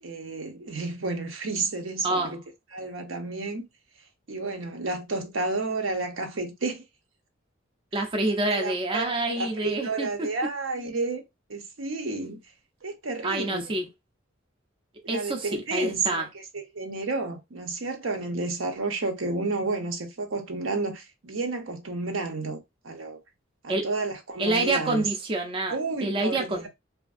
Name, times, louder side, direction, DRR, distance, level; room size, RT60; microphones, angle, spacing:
voice 1, 0.0-2.4 2.7-3.6 4.3-6.8 8.2-11.2 11.5-12.4 12.8-13.6 15.0-16.2 16.5-22.6 22.8-23.2 23.6-25.0 25.7-26.7, right 3 dB, 75° right, 0.7 m, -31 dB
voice 2, 2.0-2.3 7.9-10.3 13.2-13.9 15.1-16.3 23.7-23.9 24.4-25.7 26.0-26.7, right 2 dB, 25° right, 0.5 m, -27 dB
2.8 x 2.5 x 2.4 m
head